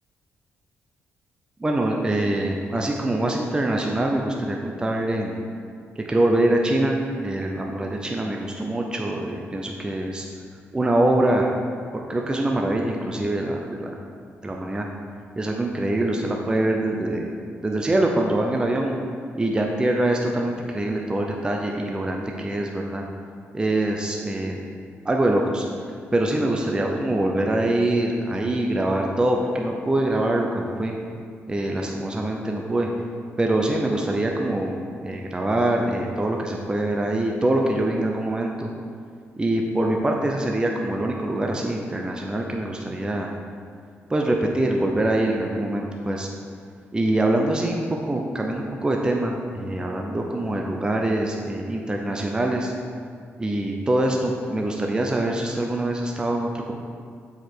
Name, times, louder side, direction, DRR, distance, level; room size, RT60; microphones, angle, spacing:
voice 1, 1.6-5.4 6.1-10.3 10.7-11.5 11.9-13.9 14.4-14.9 15.4-17.3 17.6-18.9 19.3-23.0 23.5-24.6 25.0-25.6 26.1-30.9 31.5-32.9 33.4-38.7 39.4-43.3 44.1-46.3 46.9-52.7 53.4-56.7, right 1 dB, 15° right, 1 dB, 0.6 m, -24 dB
7.9 x 4.8 x 4.5 m, 2.2 s
cardioid pair, 110°, 5 cm